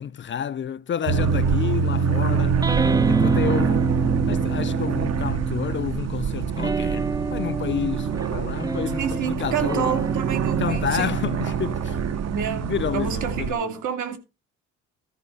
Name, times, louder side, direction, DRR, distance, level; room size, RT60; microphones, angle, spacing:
voice 1, 0.0-2.6 3.1-3.9 4.3-9.9 10.6-12.0 12.6-13.7, left 8 dB, 40° left, 0.5 m, -30 dB
sound 1, 1.1-13.5, right 6 dB, 60° right, 1.0 m, -25 dB
sound 2, 2.6-6.0 6.5-13.3, right 3 dB, 15° right, 0.4 m, -28 dB
voice 2, 9.0-11.1 12.3-14.2, right 8 dB, 80° right, 2.5 m, -29 dB
13.5 x 4.5 x 5.3 m
cardioid pair, 90°, 30 cm